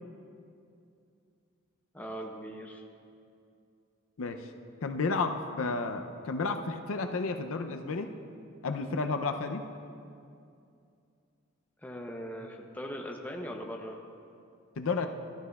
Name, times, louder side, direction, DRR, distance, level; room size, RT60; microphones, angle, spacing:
voice 1, 1.9-2.8 11.8-14.0, equal, 10° left, 1 dB, 0.6 m, -40 dB
voice 2, 4.8-8.1 8.6-9.6 14.8-15.1, left 4 dB, 75° left, 7 dB, 0.5 m, -31 dB
14.0 x 12.5 x 2.3 m, 2.5 s
head